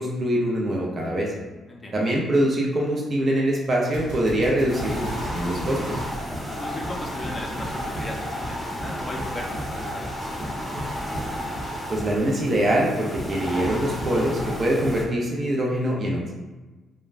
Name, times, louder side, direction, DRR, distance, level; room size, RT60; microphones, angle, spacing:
voice 1, 0.0-1.3 1.9-6.0 11.9-16.3, right 1 dB, 40° right, -2 dB, 0.5 m, -24 dB
Gunshot gunfire, 3.8-6.9, right 1 dB, 90° right, 0.8 m, -39 dB
sound 1, 4.7-15.0, equal, 5° right, 0.9 m, -31 dB
voice 2, 6.6-10.4, left 1 dB, 25° left, -1 dB, 0.6 m, -37 dB
3.1 x 2.2 x 2.4 m, 1.2 s
cardioid pair, 90°, 0 cm